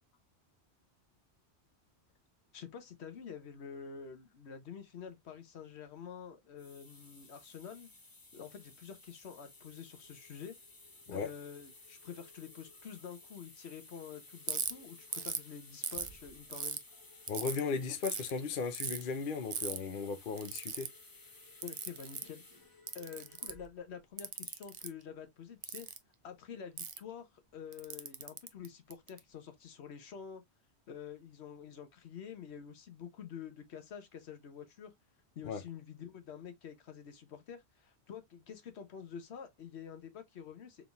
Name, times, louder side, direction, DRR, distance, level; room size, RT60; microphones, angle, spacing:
voice 1, 2.5-7.9 8.3-10.6 11.1-16.8 21.6-22.4 22.9-25.9 26.2-30.4 30.9-34.9 35.4-40.9, left 7 dB, 75° left, 1.1 m, -48 dB
sound 1, 6.4-23.7, left 3 dB, 25° left, 0.6 m, -57 dB
Ratchet pawl, 14.5-14.7 15.1-15.4 15.8-16.8 17.3-17.6 18.0-18.3 18.7-19.0 19.5-19.8 20.4-20.9 21.6-22.3 22.9-23.6 24.2-24.9 25.6-26.0 26.8-27.0 27.7-29.2, right 6 dB, 50° right, 0.4 m, -38 dB
voice 2, 17.3-20.9 35.4-35.6, left 5 dB, 55° left, 0.8 m, -36 dB
4.1 x 3.5 x 2.3 m
omnidirectional pair, 1.1 m